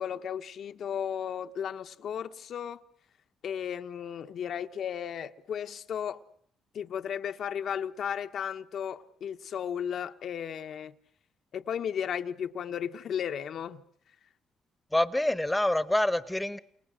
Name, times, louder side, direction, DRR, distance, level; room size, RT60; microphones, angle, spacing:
voice 1, 0.0-2.8 3.4-6.2 6.7-10.9 11.5-13.8, left 8 dB, 65° left, 1.3 m, -34 dB
voice 2, 14.9-16.6, left 1 dB, 10° left, 1.3 m, -26 dB
29.0 x 28.5 x 6.5 m
cardioid pair, 90°, 0 cm